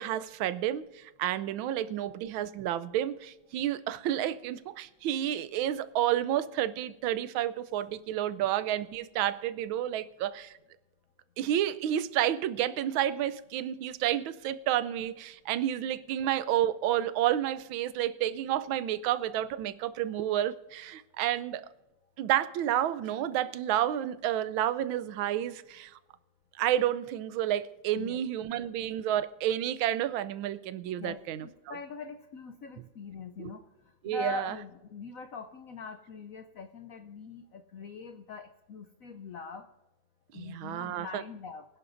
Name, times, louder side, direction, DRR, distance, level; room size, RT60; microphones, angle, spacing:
voice 1, 0.0-10.6 11.4-21.7 22.2-25.9 26.6-31.5 33.4-33.5 34.0-34.5 40.3-41.2, right 11 dB, 90° right, 15 dB, 1.4 m, -30 dB
voice 2, 31.0-33.6 34.0-39.7 40.3-41.7, left 4 dB, 70° left, 7 dB, 0.8 m, -42 dB
24.5 x 11.0 x 2.6 m, 1.0 s
omnidirectional pair, 2.1 m